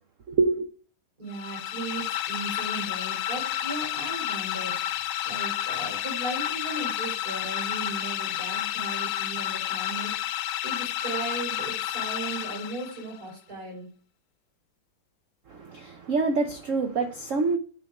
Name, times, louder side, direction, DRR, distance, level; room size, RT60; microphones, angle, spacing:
voice 1, 0.3-0.7 15.5-17.6, right 3 dB, 85° right, 0.6 m, -26 dB
voice 2, 1.2-4.8 5.2-10.1 10.6-13.9, right 2 dB, 45° right, 4.6 m, -37 dB
sound 1, 1.3-13.2, left 12 dB, 75° left, 1.4 m, -31 dB
9.3 x 3.8 x 4.8 m
omnidirectional pair, 2.3 m